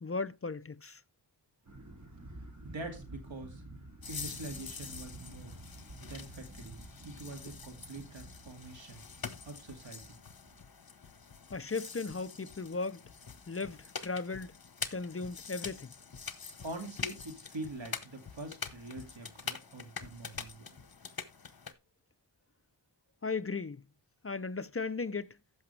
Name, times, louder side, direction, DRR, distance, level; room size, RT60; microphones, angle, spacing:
voice 1, 0.0-1.0 11.5-13.0 13.5-14.5 14.9-15.9 23.2-23.8 24.2-25.3, left 4 dB, 30° left, 0.6 m, -36 dB
sound 1, 1.7-10.7, right 1 dB, 40° right, 2.5 m, -50 dB
voice 2, 2.6-3.6 4.1-5.6 6.0-9.0 9.4-10.2 16.6-20.8, right 2 dB, 85° right, 2.2 m, -45 dB
sound 2, 4.0-21.7, left 5 dB, 50° left, 1.1 m, -45 dB
15.0 x 6.0 x 3.2 m
cardioid pair, 45°, 44 cm